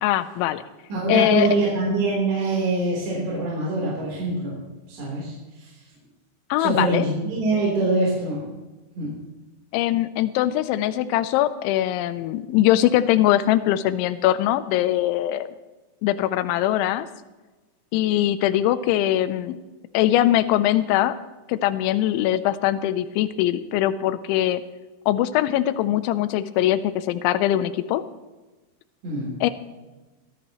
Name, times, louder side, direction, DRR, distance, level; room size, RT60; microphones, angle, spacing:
voice 1, 0.0-0.6 1.1-1.5 6.5-7.0 9.7-15.5 16.0-17.1 17.9-19.6 19.9-21.2 21.5-24.6 25.1-28.0 29.4-29.5, left 13 dB, 85° left, 12 dB, 3.1 m, -21 dB
voice 2, 0.9-4.6 4.9-5.3 5.6-5.7 6.6-8.5 9.0-9.1 29.0-29.3, right 2 dB, 65° right, -5 dB, 5.9 m, -24 dB
22.5 x 17.0 x 3.1 m, 1.2 s
omnidirectional pair, 5.3 m